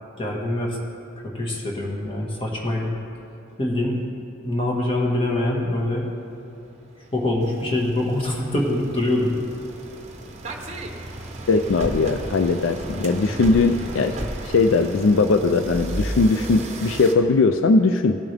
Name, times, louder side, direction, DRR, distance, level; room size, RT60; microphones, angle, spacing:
voice 1, 0.2-0.8 1.2-3.0 3.6-4.0 4.4-6.1 7.1-9.4, left 1 dB, 25° left, -2 dB, 1.6 m, -24 dB
sound 1, 5.4-5.7 6.3-17.1, right 1 dB, 35° right, 0.8 m, -34 dB
voice 2, 11.5-14.2 14.4-18.2, left 3 dB, 75° left, 7 dB, 0.4 m, -19 dB
17.0 x 7.2 x 3.4 m, 2.8 s
head